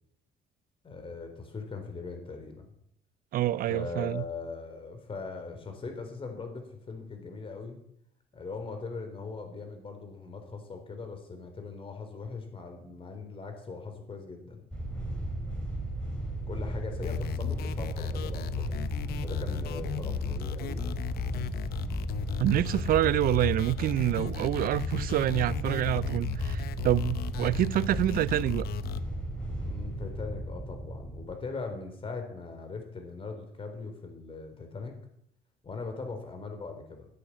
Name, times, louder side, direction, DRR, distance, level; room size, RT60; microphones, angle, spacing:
voice 1, 0.8-2.7 3.7-7.8 8.3-14.7 16.5-18.8 19.2-21.0 29.6-35.0 35.6-37.1, left 4 dB, 30° left, 3.6 m, -40 dB
voice 2, 3.3-4.2 22.4-28.7, right 13 dB, 60° right, 0.5 m, -27 dB
sound 1, 14.7-31.3, right 1 dB, 5° left, 4.9 m, -35 dB
sound 2, 17.0-29.0, left 11 dB, 65° left, 0.8 m, -36 dB
13.5 x 8.5 x 7.2 m
cardioid pair, 110°, 17 cm